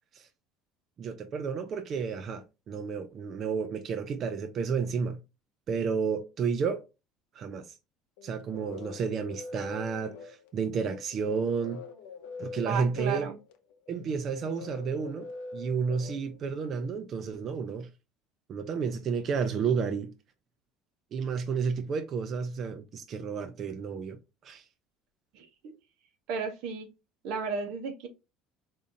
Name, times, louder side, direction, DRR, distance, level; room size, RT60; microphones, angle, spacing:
voice 1, 1.0-5.2 5.7-6.8 7.4-7.8 8.2-11.8 12.4-13.3 13.9-15.3 15.5-17.9 18.5-20.1 21.1-24.2 24.4-24.6, right 5 dB, 45° right, 0.5 m, -31 dB
sound 1, 8.2-16.9, left 4 dB, 90° left, 0.6 m, -44 dB
voice 2, 12.7-13.4 25.3-25.7 26.3-26.9 27.2-28.1, right 5 dB, 70° right, 0.8 m, -34 dB
3.6 x 2.6 x 2.6 m
supercardioid pair, 115°, 0 cm